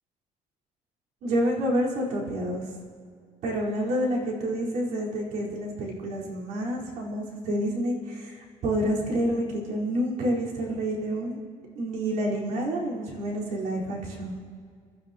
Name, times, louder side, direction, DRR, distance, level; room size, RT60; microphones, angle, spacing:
voice 1, 1.2-2.7 3.4-11.4 11.8-14.3, equal, 70° right, -4 dB, 4.6 m, -28 dB
29.0 x 13.0 x 3.0 m, 2.1 s
cardioid pair, 175°, 13 cm